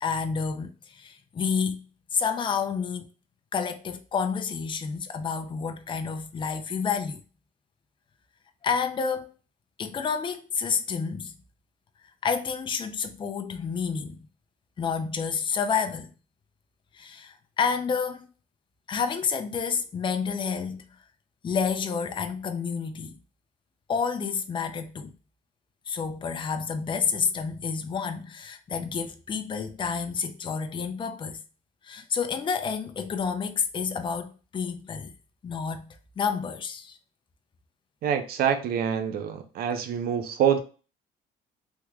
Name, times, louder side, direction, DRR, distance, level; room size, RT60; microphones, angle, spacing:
voice 1, 0.0-1.8 2.1-3.1 3.5-7.2 8.6-9.3 9.8-11.3 12.2-14.2 14.8-16.1 16.9-18.3 18.9-20.8 21.4-23.2 23.9-25.1 25.9-31.4 31.8-35.1 35.4-37.0, left 6 dB, 30° left, 0.5 m, -29 dB
voice 2, 38.0-40.6, right 8 dB, 65° right, 0.6 m, -26 dB
3.5 x 3.0 x 2.3 m
cardioid pair, 110°, 17 cm